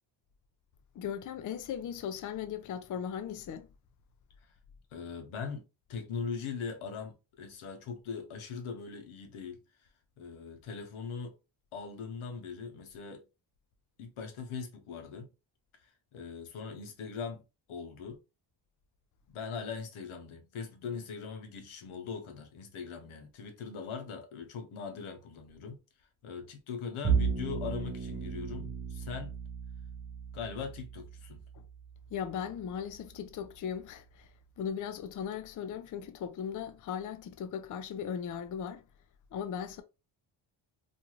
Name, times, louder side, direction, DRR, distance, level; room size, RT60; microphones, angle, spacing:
voice 1, 0.9-3.7 31.5-31.6 32.1-34.3 34.6-38.8 39.3-39.8, left 8 dB, 45° left, 0.4 m, -38 dB
voice 2, 4.9-5.6 5.9-9.9 10.2-11.3 11.7-13.2 14.0-15.3 15.8-17.4 17.7-18.2 19.3-25.8 26.2-29.4 30.3-31.4, left 5 dB, 90° left, 0.9 m, -41 dB
Bowed string instrument, 27.0-33.5, right 6 dB, 30° right, 0.7 m, -36 dB
2.6 x 2.3 x 2.9 m
cardioid pair, 105°, 48 cm